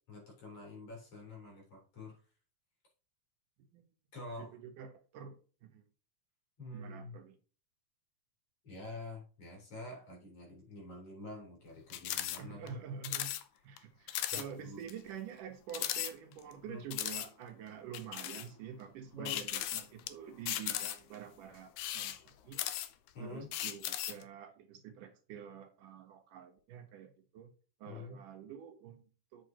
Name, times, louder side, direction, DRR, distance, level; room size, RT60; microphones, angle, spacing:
voice 1, 0.1-2.2 4.1-4.5 6.6-7.2 8.6-12.8 14.3-14.8 16.7-16.8 19.1-19.4 23.1-23.5 27.8-28.2, left 2 dB, 45° left, -1 dB, 4.9 m, -47 dB
voice 2, 4.4-5.8 6.7-7.4 12.4-13.3 13.6-22.7 23.2-27.5 27.8-29.5, right 7 dB, 75° right, 5 dB, 2.6 m, -47 dB
sound 1, 11.9-12.4 12.7-12.8 13.0-13.4 13.8-13.9 14.1-14.4 14.9-15.0 15.7-16.5 16.9-17.3 17.9-18.5 19.2-20.1 20.5-21.2 21.7-23.1 23.5-24.2, left 12 dB, 75° left, 1.9 m, -37 dB
7.9 x 7.5 x 2.9 m, 0.37 s
omnidirectional pair, 3.9 m